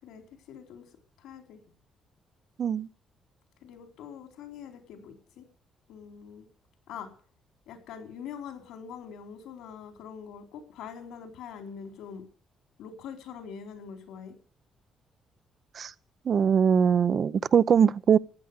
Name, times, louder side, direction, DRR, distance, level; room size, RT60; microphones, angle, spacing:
voice 1, 0.0-0.9 1.2-1.6 3.6-5.5 5.9-6.5 6.9-7.1 7.7-12.3 12.8-14.4, left 7 dB, 90° left, 4.1 m, -43 dB
voice 2, 16.2-18.2, right 7 dB, 55° right, 0.7 m, -22 dB
15.5 x 9.4 x 8.1 m
cardioid pair, 90°, 0 cm